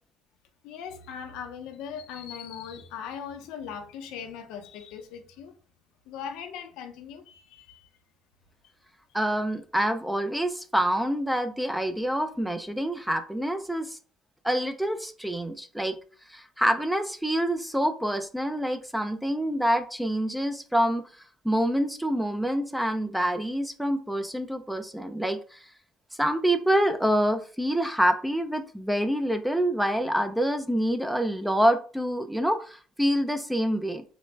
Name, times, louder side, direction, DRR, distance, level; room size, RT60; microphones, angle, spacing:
voice 1, 0.6-5.6 6.1-7.9, left 7 dB, 80° left, 0.6 m, -39 dB
voice 2, 9.1-14.0 14.4-16.0 16.3-21.0 21.4-25.7 26.1-34.0, equal, ahead, 0.3 m, -26 dB
3.8 x 2.0 x 3.3 m
cardioid pair, 130°, 0 cm